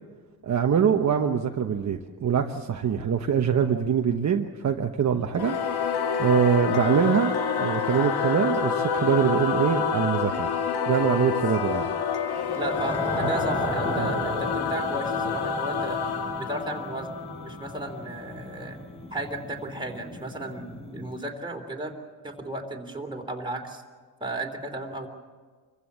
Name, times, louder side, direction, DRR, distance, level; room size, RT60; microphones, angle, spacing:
voice 1, 0.4-5.5 6.2-7.3 7.6-10.5 10.9-11.9 13.2-13.3 14.0-14.1, right 7 dB, 45° right, 3 dB, 1.2 m, -24 dB
Singing / Musical instrument, 5.3-18.2, left 6 dB, 85° left, 1.9 m, -28 dB
sound 1, 12.4-21.1, equal, 15° left, 5.4 m, -35 dB
voice 2, 12.5-16.0 16.4-18.8 19.1-20.7 20.9-21.9 22.2-23.8 24.2-25.1, right 1 dB, 10° right, 2 dB, 3.3 m, -34 dB
25.5 x 15.5 x 8.7 m, 1.5 s
cardioid pair, 110°, 38 cm